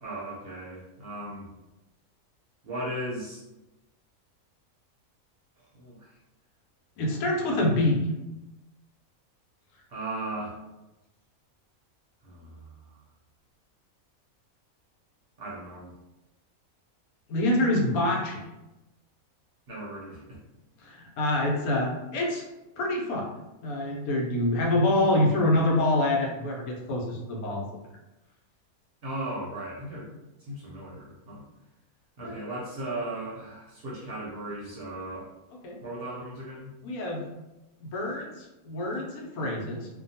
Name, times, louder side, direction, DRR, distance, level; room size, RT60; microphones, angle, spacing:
voice 1, 0.0-1.5 2.6-3.4 5.8-6.0 9.9-10.6 12.2-12.6 15.4-15.9 19.7-20.4 29.0-30.1 30.5-31.4 32.2-35.3 35.8-36.7, right 1 dB, 55° right, -5 dB, 0.7 m, -36 dB
voice 2, 7.0-8.1 17.3-18.4 20.8-22.4 22.8-23.3 23.6-27.7 32.2-32.3 35.6-35.8 36.8-37.3 37.8-39.9, left 1 dB, 85° left, -1 dB, 1.1 m, -26 dB
2.7 x 2.2 x 2.7 m, 0.98 s
omnidirectional pair, 1.5 m